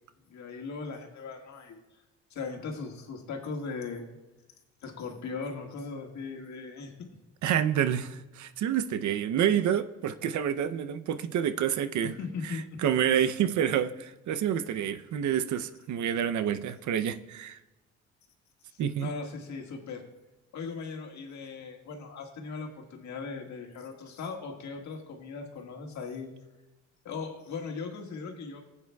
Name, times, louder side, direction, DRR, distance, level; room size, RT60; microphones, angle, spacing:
voice 1, 0.3-1.8 2.3-4.1 4.8-6.9 12.2-12.8 18.7-20.0 20.5-26.3 27.1-28.6, left 4 dB, 65° left, 2 dB, 1.7 m, -38 dB
voice 2, 7.4-12.1 12.4-17.6 18.8-19.1, right 9 dB, 70° right, 11 dB, 0.7 m, -28 dB
15.5 x 8.5 x 2.3 m, 1.0 s
cardioid pair, 90°, 30 cm